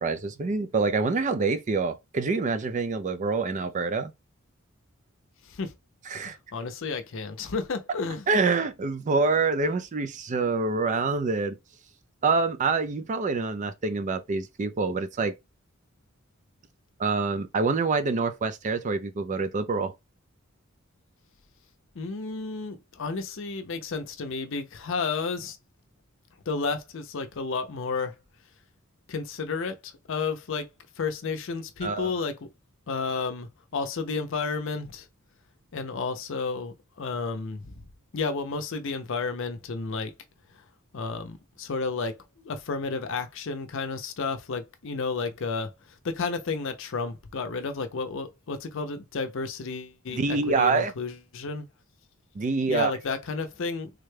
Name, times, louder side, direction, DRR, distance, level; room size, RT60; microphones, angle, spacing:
voice 1, 0.0-4.1 6.1-6.4 8.3-11.6 12.2-15.3 17.0-19.9 31.8-32.1 50.1-50.9 52.3-52.9, right 4 dB, 35° right, 0.4 m, -26 dB
voice 2, 6.1-8.3 22.0-25.6 26.5-28.1 29.1-30.7 31.0-32.5 32.9-35.1 35.7-37.7 38.1-40.1 40.9-42.1 42.4-45.7 46.0-51.7 52.7-53.9, left 4 dB, 65° left, 0.5 m, -32 dB
3.5 x 2.2 x 3.2 m
head